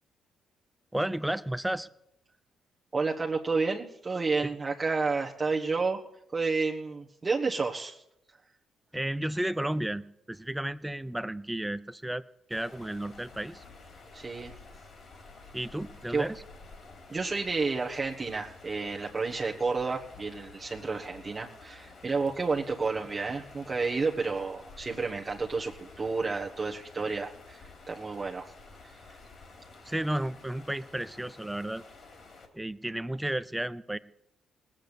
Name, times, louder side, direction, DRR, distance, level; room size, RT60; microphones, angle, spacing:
voice 1, 0.9-1.9 4.4-4.5 8.9-12.2 12.5-13.6 15.5-16.4 29.8-31.8 32.5-34.0, right 1 dB, 5° right, 15 dB, 0.6 m, -33 dB
voice 2, 2.9-6.0 6.3-8.0 14.1-14.5 16.1-16.3 17.1-28.5 28.8-29.0, right 4 dB, 30° right, -2 dB, 1.3 m, -31 dB
sound 1, 12.5-32.5, left 3 dB, 50° left, 3.8 m, -51 dB
19.0 x 8.9 x 8.2 m, 0.82 s
cardioid pair, 90°, 0 cm